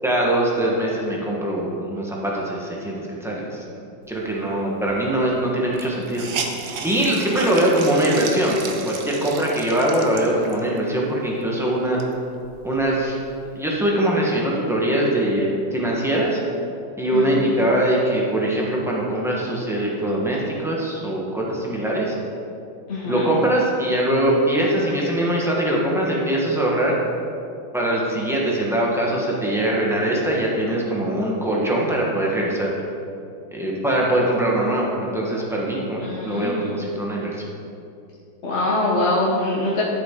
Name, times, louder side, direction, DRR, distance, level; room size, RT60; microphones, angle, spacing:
voice 1, 0.0-6.3 6.8-12.0 12.6-13.2 13.5-16.4 17.0-22.1 23.0-27.0 27.7-32.7 33.5-37.5, right 1 dB, ahead, -4 dB, 1.1 m, -22 dB
Hiss, 4.9-5.0 5.2-5.3 5.7-10.8 11.3-11.4 11.8-13.2, right 5 dB, 60° right, 0.8 m, -33 dB
voice 2, 22.9-23.3 36.0-36.7 38.4-39.8, left 2 dB, 40° left, -5 dB, 1.2 m, -23 dB
12.0 x 7.3 x 3.9 m, 2.7 s
omnidirectional pair, 2.1 m